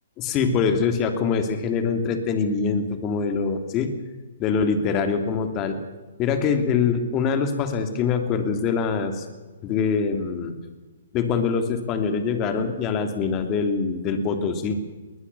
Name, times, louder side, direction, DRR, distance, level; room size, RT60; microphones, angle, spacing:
voice 1, 0.2-3.9 4.4-5.7 6.2-9.2 9.6-10.5 11.1-14.8, left 5 dB, 25° left, 7 dB, 3.0 m, -24 dB
20.5 x 20.0 x 7.1 m, 1.3 s
hypercardioid pair, 145°, 0 cm